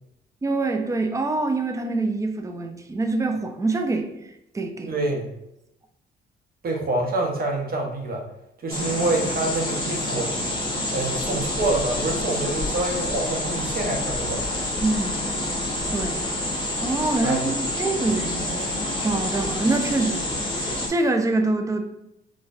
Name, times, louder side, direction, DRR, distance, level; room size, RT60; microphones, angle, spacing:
voice 1, 0.4-4.1 4.5-4.9 14.8-15.2 15.9-16.2 16.8-18.6 19.0-20.3 20.6-21.8, right 2 dB, 15° right, 5 dB, 0.4 m, -25 dB
voice 2, 4.9-5.3 6.6-8.2 8.6-10.3 10.9-14.4 17.2-17.5 18.0-18.1, right 2 dB, 50° right, 1 dB, 0.9 m, -26 dB
sound 1, 8.7-20.9, left 1 dB, 20° left, 0.9 m, -28 dB
4.0 x 2.3 x 2.5 m, 0.86 s
cardioid pair, 90°, 20 cm